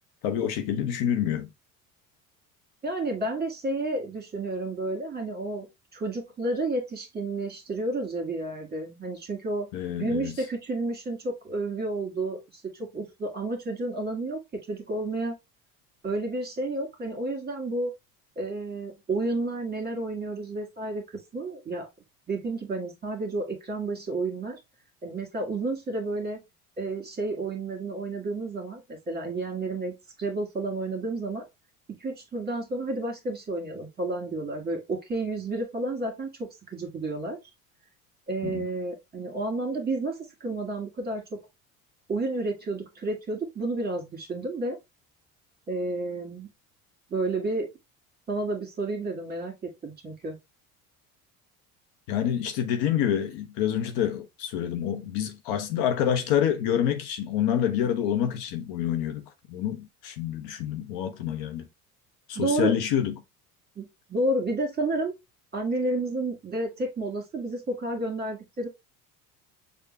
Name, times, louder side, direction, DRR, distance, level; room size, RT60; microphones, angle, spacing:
voice 1, 0.2-1.5 9.7-10.3 38.4-38.7 52.1-61.6 62.3-63.2, left 9 dB, 55° left, 0.9 m, -27 dB
voice 2, 2.8-5.7 5.9-9.7 10.0-14.4 14.7-15.3 16.0-17.9 18.4-21.9 22.3-24.6 25.0-26.4 26.8-29.9 30.2-31.5 32.0-37.4 38.3-41.4 42.1-44.8 45.7-46.5 47.1-47.7 48.3-50.4 62.4-62.7 63.8-65.1 65.5-68.7, right 2 dB, 20° right, 2.0 m, -31 dB
6.5 x 2.4 x 3.2 m
figure-of-eight pair, 65°, 45 cm